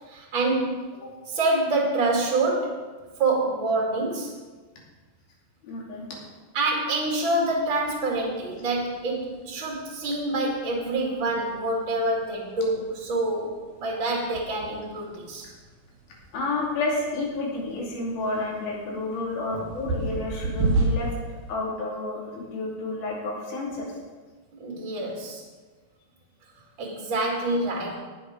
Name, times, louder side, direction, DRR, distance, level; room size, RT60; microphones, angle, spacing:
voice 1, 0.1-0.8 1.3-2.8 3.2-4.3 6.5-15.5 19.5-19.6 24.6-25.4 26.8-28.0, right 2 dB, 40° right, -1 dB, 2.3 m, -26 dB
voice 2, 5.6-6.0 16.3-21.1 21.5-23.9, left 2 dB, 85° left, -3 dB, 4.6 m, -30 dB
sound 1, 7.4-21.5, right 2 dB, 80° right, 3.2 m, -34 dB
19.0 x 6.8 x 5.1 m, 1.4 s
omnidirectional pair, 4.2 m